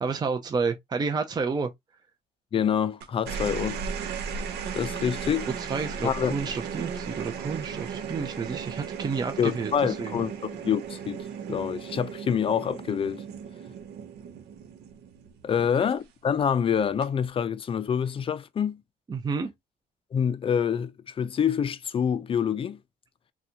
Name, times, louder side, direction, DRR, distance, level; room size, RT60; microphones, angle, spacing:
voice 1, 0.0-1.7 5.6-10.1 19.1-19.5, right 5 dB, 25° right, 0.6 m, -30 dB
voice 2, 2.5-3.8 4.7-5.5 6.0-6.3 9.4-11.2 11.5-13.2 15.4-18.8 20.1-22.8, left 7 dB, 35° left, 0.5 m, -26 dB
sound 1, 3.0-15.6 16.8-17.3, right 6 dB, 75° right, 0.9 m, -36 dB
4.0 x 2.3 x 2.8 m
cardioid pair, 110°, 17 cm